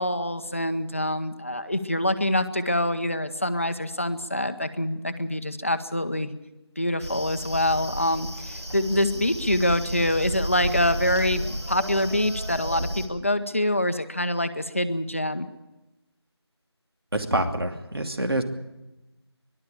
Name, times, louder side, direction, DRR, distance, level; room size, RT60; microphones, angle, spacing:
voice 1, 0.0-6.3 6.8-15.5, left 1 dB, 30° left, 9 dB, 1.0 m, -25 dB
sound 1, 7.0-13.1, equal, 85° right, 6.1 m, -32 dB
voice 2, 17.1-18.4, right 1 dB, 60° right, 5 dB, 2.7 m, -26 dB
23.0 x 12.0 x 9.9 m, 1.0 s
figure-of-eight pair, 175°, 14 cm